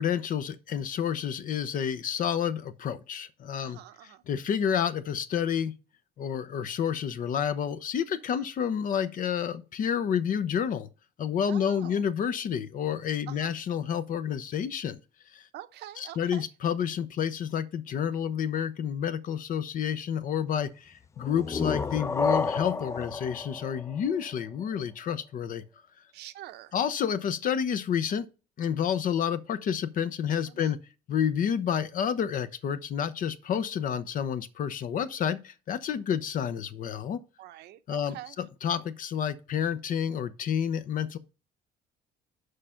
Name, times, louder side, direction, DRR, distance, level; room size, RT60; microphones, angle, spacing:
voice 1, 0.0-3.8 4.3-5.7 6.2-10.9 11.2-15.0 15.3-15.5 16.0-25.6 26.7-28.3 28.6-30.8 31.1-37.2 37.9-41.2, left 8 dB, 55° left, 0.7 m, -29 dB
voice 2, 3.6-4.2 8.3-8.4 11.5-12.0 13.3-13.5 15.5-16.4 26.1-26.8 30.5-30.8 37.4-38.3, right 13 dB, 75° right, 0.8 m, -45 dB
sound 1, 21.2-24.8, left 4 dB, 15° left, 0.3 m, -31 dB
6.6 x 5.1 x 5.7 m
cardioid pair, 110°, 17 cm